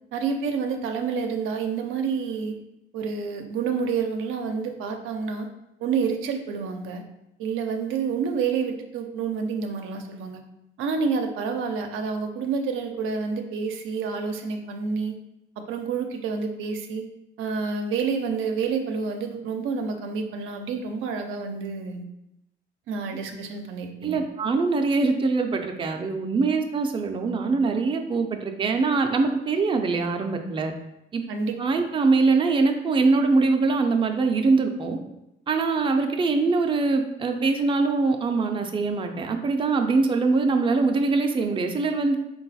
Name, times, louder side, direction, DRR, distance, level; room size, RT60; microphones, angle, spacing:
voice 1, 0.1-2.6 2.9-5.5 5.8-7.0 7.4-10.4 10.8-15.2 15.6-17.0 17.4-22.0 22.9-24.2 31.3-31.5, right 5 dB, 85° right, 5 dB, 0.5 m, -28 dB
voice 2, 24.0-30.7 31.1-31.2 31.6-35.0 35.5-42.2, right 3 dB, 25° right, 4 dB, 0.4 m, -23 dB
3.9 x 2.3 x 4.0 m, 0.86 s
cardioid pair, 90°, 20 cm